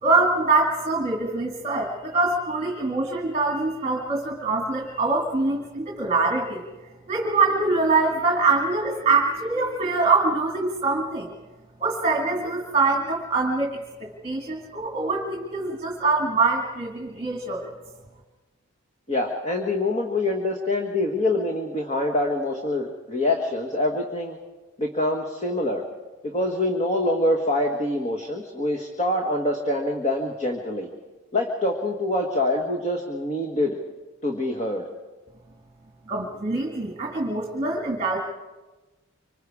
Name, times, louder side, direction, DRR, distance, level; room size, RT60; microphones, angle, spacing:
voice 1, 0.0-6.7 7.1-11.3 11.8-17.7 36.1-38.2, right 3 dB, 25° right, -1 dB, 2.1 m, -24 dB
voice 2, 19.1-24.4 24.8-25.8 26.2-30.9 31.3-33.8 34.2-34.8, left 1 dB, 30° left, 2 dB, 1.6 m, -25 dB
26.0 x 25.5 x 4.9 m, 1.2 s
head